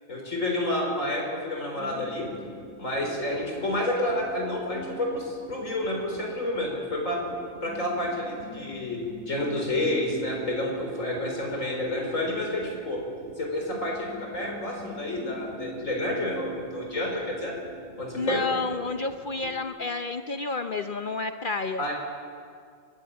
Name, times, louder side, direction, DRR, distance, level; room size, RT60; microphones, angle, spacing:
voice 1, 0.1-2.3 2.8-7.2 7.6-9.0 9.3-13.0 13.4-17.5 18.0-18.4 21.8-21.9, left 1 dB, 80° left, 0 dB, 4.8 m, -29 dB
sound 1, 1.7-19.6, right 2 dB, 60° right, 3.0 m, -43 dB
voice 2, 18.1-21.8, left 3 dB, 45° left, 7 dB, 0.8 m, -30 dB
22.5 x 15.5 x 8.7 m, 2.3 s
omnidirectional pair, 1.3 m